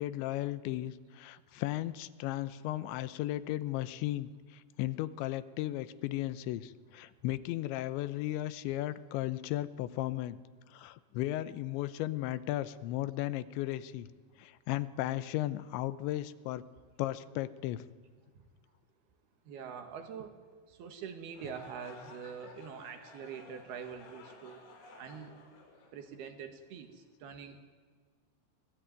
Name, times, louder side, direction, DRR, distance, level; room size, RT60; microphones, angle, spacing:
voice 1, 0.0-10.4 10.7-14.1 14.4-16.6 17.0-17.8, left 15 dB, 85° left, 15 dB, 3.2 m, -35 dB
voice 2, 19.5-20.4 20.7-24.6 25.0-25.3 25.9-27.7, right 7 dB, 65° right, 6 dB, 3.6 m, -44 dB
sound 1, 21.2-26.5, left 3 dB, 60° left, 7.3 m, -55 dB
25.0 x 19.0 x 9.5 m, 1.5 s
omnidirectional pair, 5.1 m